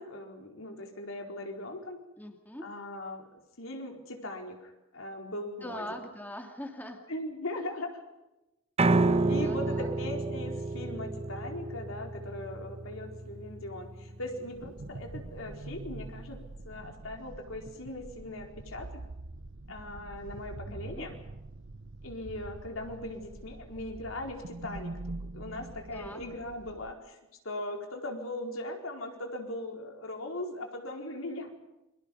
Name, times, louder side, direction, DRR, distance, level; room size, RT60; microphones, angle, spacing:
voice 1, 0.0-2.0 2.6-6.0 7.1-8.0 9.0-19.0 19.7-21.1 22.0-24.9 25.2-27.2 27.4-31.5, left 1 dB, 70° left, 2 dB, 4.5 m, -39 dB
voice 2, 2.2-2.7 5.6-7.0 8.9-9.9 20.7-21.1 25.9-26.2, left 1 dB, 10° left, 4 dB, 2.3 m, -42 dB
Piano, 8.8-14.9, right 2 dB, 30° right, 1.0 m, -30 dB
sound 1, 14.5-26.9, right 2 dB, 60° right, 0.9 m, -44 dB
29.0 x 24.0 x 5.4 m, 0.98 s
head